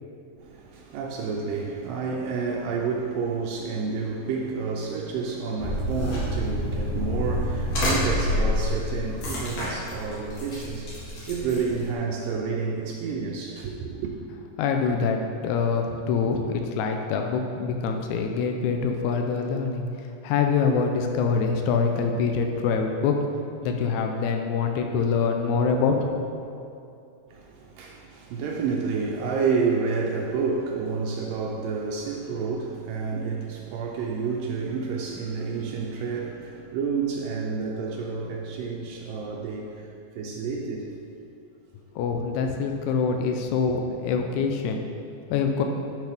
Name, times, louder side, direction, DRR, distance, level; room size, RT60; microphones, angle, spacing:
voice 1, 0.4-14.1 27.3-41.0 43.7-43.8, right 5 dB, 80° right, 2.2 m, -29 dB
sound 1, 5.6-11.9, left 1 dB, 60° left, 3.3 m, -28 dB
voice 2, 14.6-23.2 23.6-26.2 41.9-44.8 45.3-45.6, left 5 dB, 90° left, 1.6 m, -25 dB
11.0 x 5.9 x 3.5 m
omnidirectional pair, 4.0 m